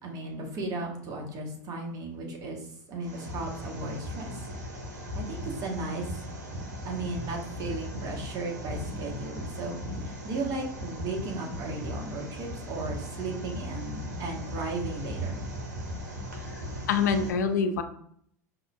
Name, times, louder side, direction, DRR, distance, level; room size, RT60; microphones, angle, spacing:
voice 1, 0.0-2.6 2.9-4.3 5.1-6.1 6.8-9.8 10.0-15.4, right 3 dB, 40° right, 1 dB, 1.0 m, -35 dB
sound 1, 3.0-17.3, equal, 75° right, 0.9 m, -38 dB
voice 2, 16.5-17.8, left 6 dB, 75° left, 8 dB, 0.4 m, -26 dB
5.3 x 2.5 x 2.2 m, 0.65 s
hypercardioid pair, 85°, 9 cm